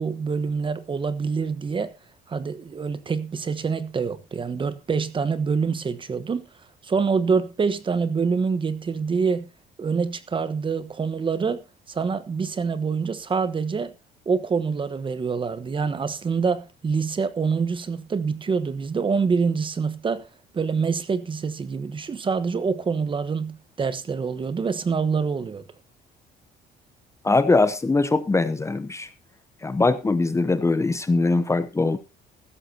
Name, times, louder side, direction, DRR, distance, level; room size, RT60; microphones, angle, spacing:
voice 1, 0.0-1.9 2.3-6.5 6.8-9.5 9.8-11.6 11.9-13.9 14.3-20.3 20.5-25.6, right 5 dB, 30° right, 1.1 m, -26 dB
voice 2, 27.2-29.1 29.6-32.0, left 3 dB, 15° left, 0.8 m, -21 dB
15.5 x 13.0 x 2.8 m
cardioid pair, 110°, 17 cm